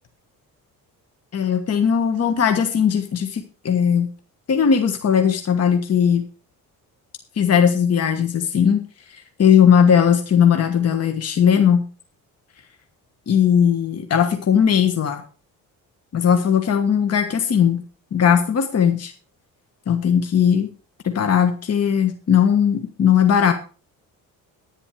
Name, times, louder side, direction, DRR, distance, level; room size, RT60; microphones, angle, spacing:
voice 1, 1.3-4.1 4.5-6.3 7.4-8.8 9.4-11.8 13.3-15.2 16.1-17.8 18.1-19.1 19.9-20.7 21.0-23.5, left 8 dB, 45° left, 6 dB, 1.4 m, -18 dB
10.5 x 9.8 x 4.8 m, 0.36 s
cardioid pair, 115°, 34 cm